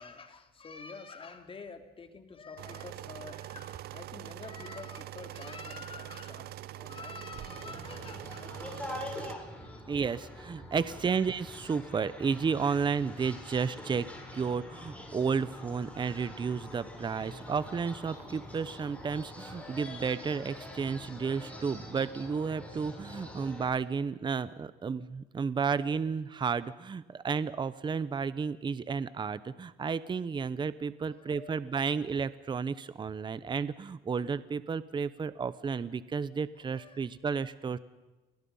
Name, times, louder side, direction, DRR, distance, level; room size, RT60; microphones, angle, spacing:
voice 1, 0.0-10.3 10.7-11.0 30.8-32.3 36.5-37.1, left 4 dB, 30° left, 6 dB, 3.2 m, -48 dB
sound 1, 2.6-9.4, right 14 dB, 70° right, 0.8 m, -44 dB
sound 2, 7.3-23.6, left 1 dB, 10° left, 7.7 m, -45 dB
voice 2, 9.9-14.1 14.3-37.8, right 5 dB, 25° right, 15 dB, 0.9 m, -32 dB
30.0 x 22.5 x 5.6 m, 1.1 s
cardioid pair, 110°, 17 cm